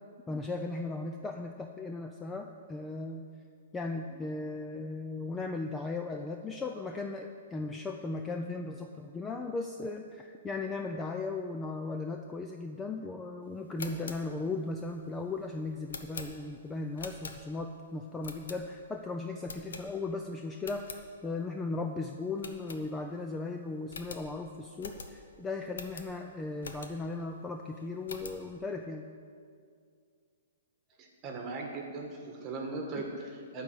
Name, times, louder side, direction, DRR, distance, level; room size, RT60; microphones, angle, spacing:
voice 1, 0.3-3.2 3.7-29.0 32.9-33.0, left 3 dB, 10° left, 4 dB, 0.4 m, -37 dB
sound 1, 13.6-17.8 18.2-19.0 19.4-20.2 20.5-21.0 21.5-21.6 21.8-21.9 22.4-23.3 23.5-23.6 23.9-27.2 27.6-28.5, left 4 dB, 90° left, 0.9 m, -45 dB
voice 2, 31.0-33.6, right 3 dB, 20° right, 1 dB, 1.4 m, -39 dB
11.5 x 4.2 x 7.8 m, 2.2 s
hypercardioid pair, 155°, 0 cm